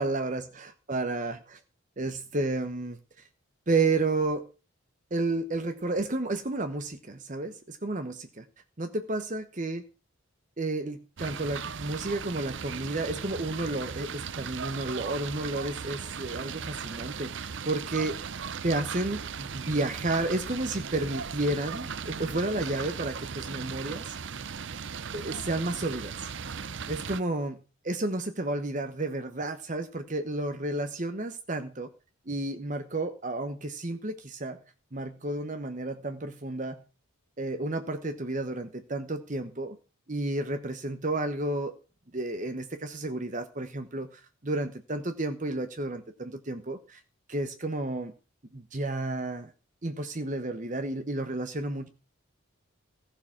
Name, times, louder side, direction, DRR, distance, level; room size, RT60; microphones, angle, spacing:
voice 1, 0.0-1.6 2.0-3.0 3.7-4.5 5.1-8.5 8.8-9.8 10.6-18.2 18.6-24.2 25.1-26.3 26.9-31.9 32.3-34.6 34.9-36.8 37.4-39.8 40.1-41.8 42.1-47.0 47.3-48.1 48.5-49.5 49.8-51.9, right 2 dB, 35° right, 8 dB, 1.0 m, -31 dB
sound 1, 11.2-27.2, right 6 dB, 55° right, 0.6 m, -37 dB
16.0 x 6.8 x 7.3 m, 0.33 s
head